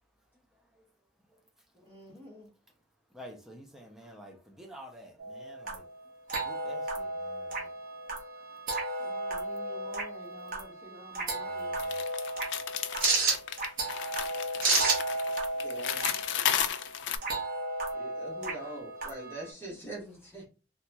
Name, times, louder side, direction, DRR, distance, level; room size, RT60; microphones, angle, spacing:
voice 1, 1.8-2.5 9.0-11.9, equal, 30° right, 1.4 m, -50 dB
voice 2, 3.1-5.9 6.4-7.7 11.5-12.0, equal, 5° right, 0.5 m, -50 dB
sound 1, 5.2-19.5, right 3 dB, 50° right, 0.9 m, -33 dB
sound 2, 11.8-17.2, left 9 dB, 75° left, 0.3 m, -33 dB
voice 3, 15.5-16.4 17.9-20.5, right 1 dB, 15° left, 1.2 m, -43 dB
2.9 x 2.8 x 2.2 m
head